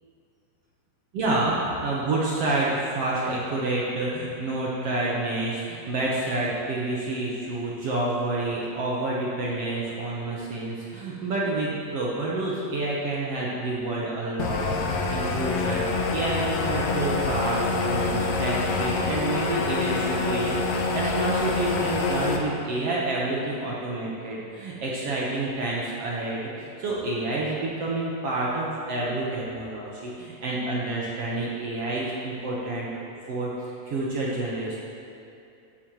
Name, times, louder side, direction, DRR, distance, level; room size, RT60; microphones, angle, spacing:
voice 1, 1.1-32.9 33.3-33.5 33.9-34.8, right 2 dB, 60° right, -5 dB, 1.8 m, -28 dB
sound 1, 14.4-22.4, left 3 dB, 70° left, 1.9 m, -26 dB
14.0 x 10.5 x 3.1 m, 2.6 s
omnidirectional pair, 3.9 m